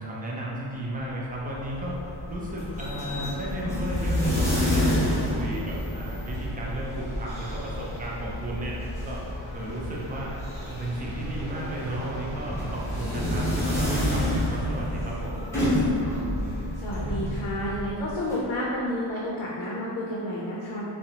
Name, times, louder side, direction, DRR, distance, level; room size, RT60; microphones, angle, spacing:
voice 1, 0.0-2.0 2.3-8.8 9.0-9.3 9.5-10.4 10.6-15.4, right 1 dB, 20° right, -4 dB, 0.3 m, -34 dB
sound 1, 1.3-18.4, left 1 dB, 5° left, 0.7 m, -29 dB
voice 2, 16.8-20.8, left 1 dB, 85° left, -5 dB, 0.5 m, -30 dB
2.6 x 2.1 x 2.8 m, 2.7 s
wide cardioid pair, 125°, 47 cm